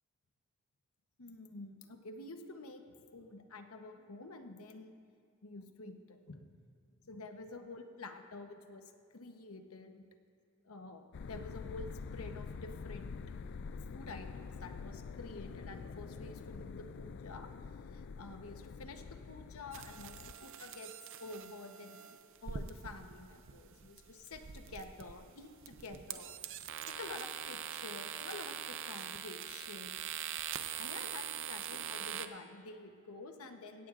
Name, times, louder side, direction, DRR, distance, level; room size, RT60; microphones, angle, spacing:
voice 1, 1.2-2.8 3.1-5.0 5.4-6.5 7.0-10.1 10.6-13.1 13.9-17.5 17.9-20.1 20.4-20.9 21.2-26.4 26.9-30.1 30.8-33.9, left 3 dB, 85° left, 6 dB, 1.0 m, -49 dB
sound 1, 11.1-20.3, left 5 dB, 55° left, 0.4 m, -46 dB
sound 2, 19.7-32.3, right 9 dB, 65° right, 0.6 m, -43 dB
17.0 x 17.0 x 2.5 m, 2.2 s
head